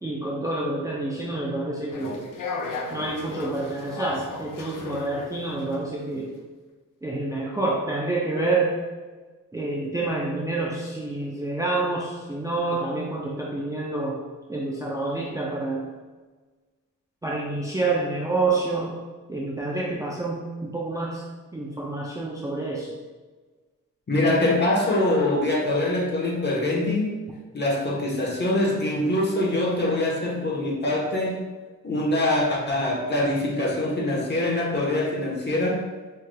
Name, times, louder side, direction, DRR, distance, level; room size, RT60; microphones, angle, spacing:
voice 1, 0.0-2.3 2.9-6.3 7.0-8.8 9.5-14.2 14.5-15.9 17.2-18.9 19.3-21.2 21.5-22.9, right 2 dB, 10° right, -3 dB, 0.5 m, -28 dB
sound 1, 1.9-5.8, left 3 dB, 80° left, 0.6 m, -35 dB
voice 2, 24.1-27.1 27.5-31.4 31.8-35.9, left 1 dB, 35° left, -3 dB, 1.1 m, -24 dB
5.6 x 3.2 x 2.2 m, 1.4 s
wide cardioid pair, 110°, 31 cm